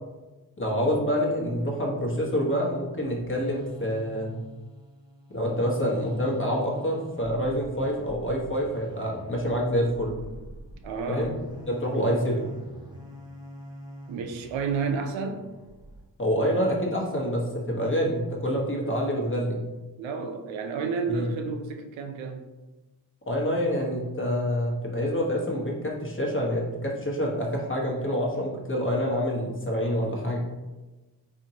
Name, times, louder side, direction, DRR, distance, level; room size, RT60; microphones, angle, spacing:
voice 1, 0.6-4.3 5.3-10.1 11.1-11.3 11.7-12.5 16.2-19.6 21.1-21.3 23.3-30.4, equal, 25° left, -2 dB, 1.1 m, -27 dB
sound 1, 2.9-16.0, equal, 10° right, 1.0 m, -44 dB
voice 2, 10.8-11.4 14.1-15.5 20.0-22.4, right 5 dB, 85° right, 5 dB, 0.6 m, -31 dB
3.7 x 2.7 x 2.7 m, 1.2 s
supercardioid pair, 45°, 45 cm